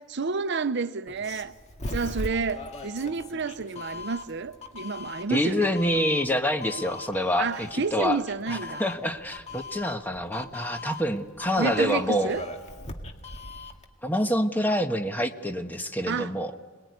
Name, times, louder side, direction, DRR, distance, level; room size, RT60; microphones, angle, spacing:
voice 1, 0.0-1.5 1.9-5.7 5.9-6.0 7.4-8.8 11.6-12.4 16.1-16.3, right 4 dB, 60° right, 0.7 m, -30 dB
Doorbell, 1.1-13.9, left 2 dB, 35° left, 1.9 m, -40 dB
voice 2, 5.3-8.2 8.5-12.3 14.0-16.5, equal, 10° left, 1.3 m, -26 dB
28.0 x 20.5 x 9.6 m
head